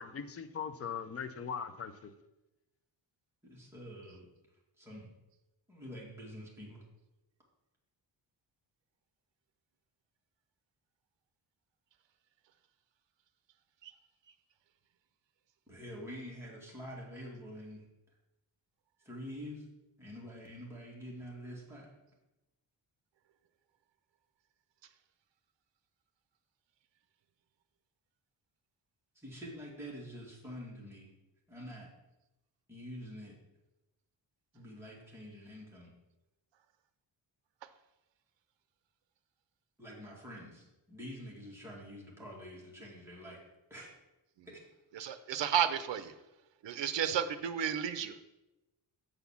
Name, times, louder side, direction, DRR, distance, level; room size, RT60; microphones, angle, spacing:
voice 1, 0.0-2.1, left 7 dB, 35° left, 0.4 m, -40 dB
voice 2, 3.4-4.3 4.8-5.1 5.7-6.8 15.7-17.8 19.0-19.6 20.0-21.9 29.2-31.1 31.5-31.9 32.7-33.4 34.5-35.9 39.8-43.4 43.7-43.9 44.5-44.6, equal, 5° right, 2.0 m, -47 dB
voice 3, 44.9-46.1 46.6-48.2, right 9 dB, 70° right, 0.7 m, -32 dB
8.0 x 4.1 x 7.0 m
wide cardioid pair, 170°, 46 cm